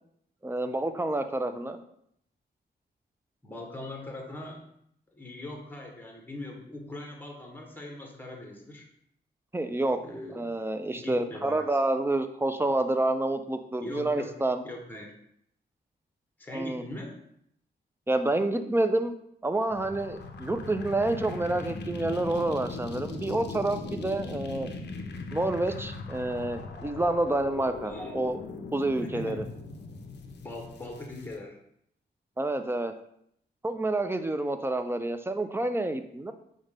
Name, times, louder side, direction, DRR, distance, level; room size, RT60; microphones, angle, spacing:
voice 1, 0.4-1.8 9.5-10.0 10.3-14.6 16.5-16.8 18.1-19.1 19.4-24.7 25.3-28.4 28.7-29.4 32.4-32.9 33.6-36.3, right 2 dB, 15° right, 9 dB, 0.3 m, -28 dB
voice 2, 3.4-4.6 5.1-8.9 10.0-10.5 10.8-11.8 13.8-14.3 14.6-15.2 16.4-17.2 27.8-28.2 29.0-29.4 30.4-31.6, left 2 dB, 10° left, 1 dB, 0.8 m, -41 dB
sound 1, 19.7-31.3, left 3 dB, 70° left, 0.5 m, -39 dB
5.0 x 2.2 x 3.2 m, 0.71 s
cardioid pair, 70°, 18 cm